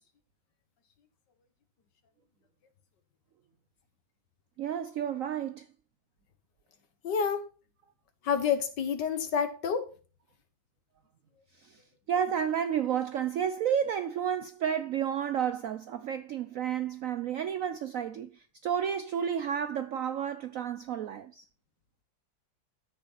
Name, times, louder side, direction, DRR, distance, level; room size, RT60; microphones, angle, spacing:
voice 1, 4.6-5.7 11.6-11.8 12.1-21.4, right 8 dB, 70° right, 0.8 m, -31 dB
voice 2, 7.0-7.5 8.2-9.9, left 7 dB, 70° left, 1.9 m, -28 dB
13.5 x 6.4 x 4.0 m
omnidirectional pair, 2.0 m